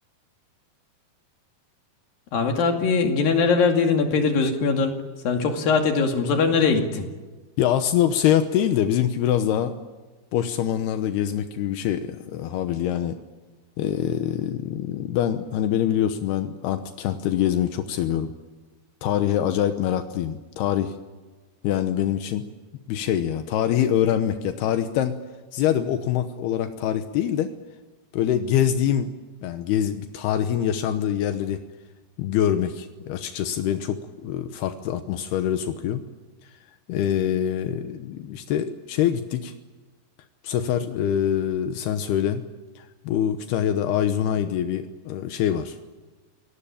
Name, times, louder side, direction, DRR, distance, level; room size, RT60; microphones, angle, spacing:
voice 1, 2.3-5.0 5.2-7.1, left 4 dB, 65° left, 4 dB, 4.0 m, -21 dB
voice 2, 7.6-9.7 10.3-13.2 13.8-18.3 19.0-20.9 21.6-22.4 22.9-25.2 25.5-27.5 28.1-29.1 29.4-31.6 32.2-36.0 36.9-39.5 40.4-42.4 42.8-45.8, left 10 dB, 80° left, 9 dB, 3.0 m, -24 dB
27.0 x 18.5 x 8.8 m, 1.3 s
omnidirectional pair, 4.6 m